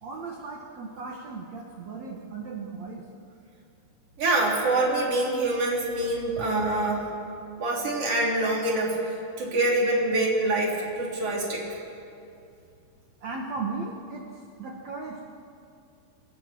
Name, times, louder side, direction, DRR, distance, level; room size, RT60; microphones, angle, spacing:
voice 1, 0.0-3.0 13.2-15.2, right 4 dB, 80° right, -1 dB, 1.5 m, -36 dB
voice 2, 4.2-7.1 7.6-9.0 9.4-11.6, right 2 dB, 35° right, -3 dB, 4.1 m, -25 dB
27.5 x 20.5 x 6.1 m, 2.6 s
omnidirectional pair, 5.5 m